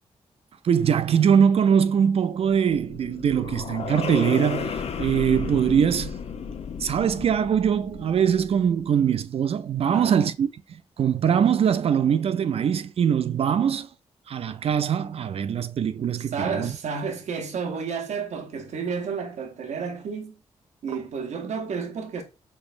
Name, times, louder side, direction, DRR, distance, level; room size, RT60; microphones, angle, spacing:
voice 1, 0.6-6.2 6.8-10.5 11.0-13.9 14.3-16.7 20.9-21.0, right 8 dB, 55° right, 0.4 m, -22 dB
sound 1, 2.3-8.8, left 6 dB, 60° left, 0.5 m, -33 dB
voice 2, 9.9-10.2 16.2-20.4 20.8-22.2, right 5 dB, 75° right, 0.7 m, -31 dB
4.3 x 3.1 x 2.4 m
cardioid pair, 60°, 12 cm